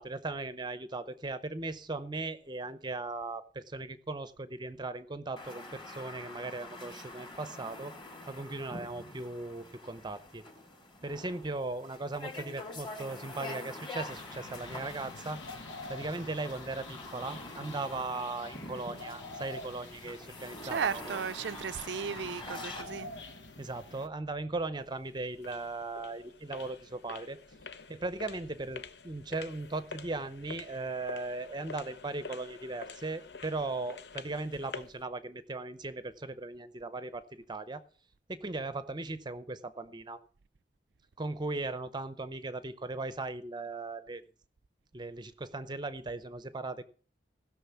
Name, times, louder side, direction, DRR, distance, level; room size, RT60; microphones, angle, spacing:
voice 1, 0.0-7.9 8.3-10.4 11.0-15.4 15.9-21.2 23.6-27.4 27.9-37.8 38.3-40.2 41.2-44.2 44.9-46.8, right 3 dB, 25° right, 0.7 m, -38 dB
sound 1, 5.4-22.8, left 2 dB, 30° left, 2.9 m, -46 dB
sound 2, 14.1-24.1, left 2 dB, 90° left, 1.2 m, -47 dB
voice 2, 20.6-23.1, right 6 dB, 80° right, 0.5 m, -35 dB
sound 3, 24.8-35.0, left 5 dB, 65° left, 0.9 m, -48 dB
16.5 x 6.3 x 7.1 m
head